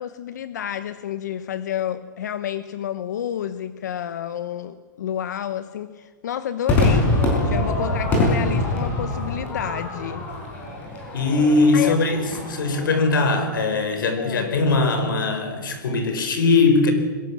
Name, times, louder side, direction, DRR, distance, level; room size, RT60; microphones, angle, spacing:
voice 1, 0.0-10.2 11.7-12.0 14.2-14.6, left 10 dB, 55° left, 12 dB, 0.9 m, -30 dB
Crowd / Fireworks, 6.7-13.2, left 2 dB, 15° left, 5.0 m, -24 dB
voice 2, 11.1-16.9, left 3 dB, 75° left, 8 dB, 4.5 m, -20 dB
21.5 x 19.5 x 7.4 m, 1.5 s
hypercardioid pair, 175°, 11 cm